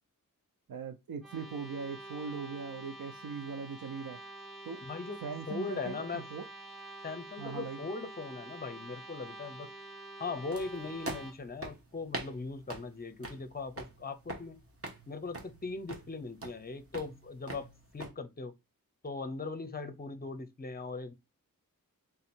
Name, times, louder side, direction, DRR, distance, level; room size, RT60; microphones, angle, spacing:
voice 1, 0.7-4.2 4.7-4.8 5.2-6.4 7.4-7.8, right 5 dB, 85° right, 0.6 m, -40 dB
sound 1, 1.2-11.3, right 1 dB, ahead, 1.1 m, -47 dB
voice 2, 4.8-5.2 5.5-6.3 7.0-9.7 10.2-14.6 15.1-17.7 17.9-18.5 19.0-21.1, left 4 dB, 25° left, 0.6 m, -39 dB
sound 2, 10.5-18.1, right 2 dB, 40° right, 1.2 m, -44 dB
3.7 x 2.8 x 4.3 m
wide cardioid pair, 90°, 34 cm